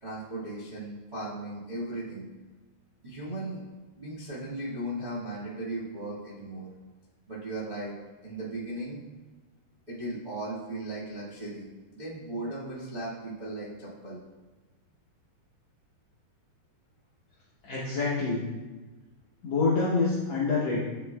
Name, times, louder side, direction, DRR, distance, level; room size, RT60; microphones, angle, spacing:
voice 1, 0.0-2.3 3.0-3.6 3.9-6.7 7.3-7.9 8.2-9.0 9.9-14.2, right 1 dB, 50° right, -9 dB, 0.5 m, -37 dB
voice 2, 17.6-18.4 19.4-20.8, left 4 dB, 75° left, -6 dB, 1.6 m, -26 dB
9.8 x 5.9 x 2.3 m, 1.3 s
omnidirectional pair, 4.4 m